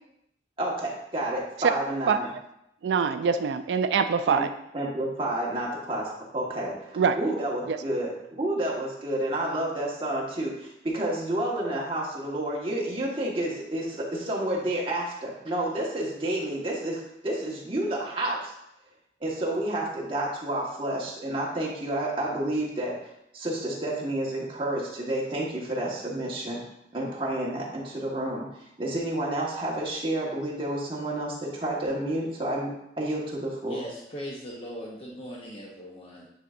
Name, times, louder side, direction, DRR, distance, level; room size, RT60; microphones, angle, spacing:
voice 1, 0.6-2.3 4.3-4.4 4.7-18.5 19.2-22.9 23.3-26.6 26.9-32.7 33.0-33.8, right 1 dB, 30° right, -4 dB, 1.4 m, -30 dB
voice 2, 2.8-4.5 7.0-7.1 7.7-7.8, right 6 dB, 80° right, 8 dB, 0.3 m, -24 dB
voice 3, 33.7-36.3, equal, 35° left, -4 dB, 0.8 m, -39 dB
9.3 x 4.1 x 2.5 m, 0.80 s
head